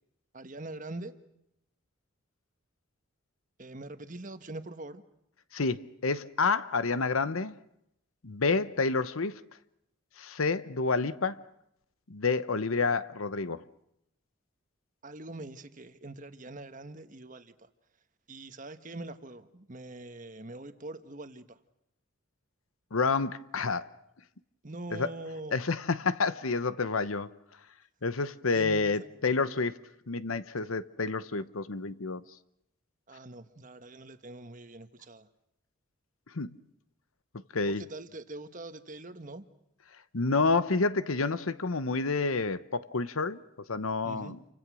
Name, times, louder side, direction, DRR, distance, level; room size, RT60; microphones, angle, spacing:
voice 1, 0.3-1.1 3.6-5.0 15.0-17.5 18.3-21.6 24.6-25.6 28.5-28.9 33.1-35.3 37.6-39.4 44.0-44.3, right 2 dB, 40° right, 1.4 m, -43 dB
voice 2, 5.5-7.5 8.2-9.4 10.2-11.4 12.1-13.6 22.9-23.9 24.9-25.1 25.5-27.3 28.0-29.8 30.1-32.2 36.3-36.6 37.5-37.8 40.1-43.4 43.7-44.4, left 4 dB, 80° left, 1.0 m, -29 dB
29.0 x 25.0 x 6.3 m
head